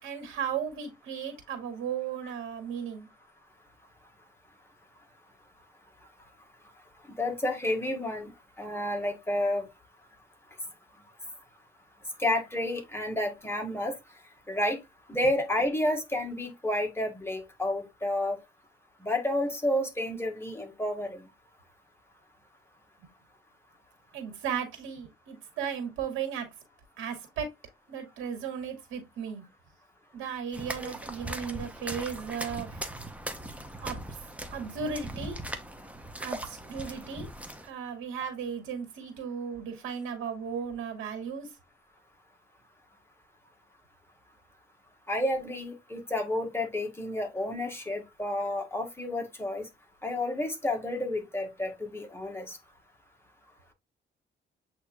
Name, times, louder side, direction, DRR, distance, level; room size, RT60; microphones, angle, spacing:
voice 1, 0.0-3.1 24.1-26.5 27.0-27.5 27.9-29.4 30.1-32.7 33.8-34.0 34.5-35.4 36.2-37.3 37.6-41.5, right 7 dB, 90° right, 1.9 m, -35 dB
voice 2, 7.2-8.3 8.6-9.7 12.2-13.9 14.5-14.8 15.1-18.4 19.0-21.3 30.7-30.9 45.1-49.7 50.0-52.6, left 1 dB, 10° left, 1.6 m, -30 dB
sound 1, 30.5-37.7, right 1 dB, 5° right, 0.9 m, -39 dB
8.1 x 2.9 x 2.3 m
cardioid pair, 90°, 20 cm